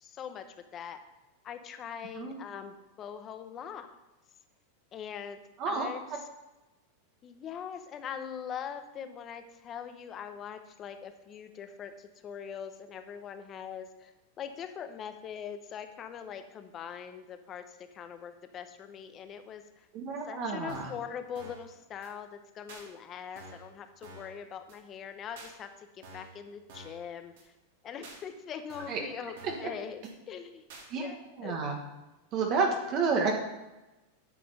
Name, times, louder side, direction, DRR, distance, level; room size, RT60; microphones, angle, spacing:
voice 1, 0.0-1.0 1.4-3.9 4.9-6.2 7.2-14.1 14.4-19.9 20.3-27.5 27.8-30.6 30.9-31.6, left 8 dB, 30° left, 8 dB, 0.9 m, -42 dB
voice 2, 19.9-20.9 28.9-29.0 29.4-29.7 30.9-31.0 31.4-31.7 32.3-33.3, right 4 dB, 40° right, 2 dB, 1.4 m, -30 dB
sound 1, 20.7-21.0 21.3-21.7 22.0-22.1 22.7-22.8 23.4-23.7 24.0-24.3 24.7-24.8 25.4-25.5 26.0-26.4 26.7-27.0 27.4-27.5 28.0-28.2 28.7-29.0 29.4-29.7 30.0-30.1 30.7-30.9, right 2 dB, 75° right, 3.2 m, -49 dB
9.5 x 5.9 x 5.5 m, 1.0 s
supercardioid pair, 135°, 0 cm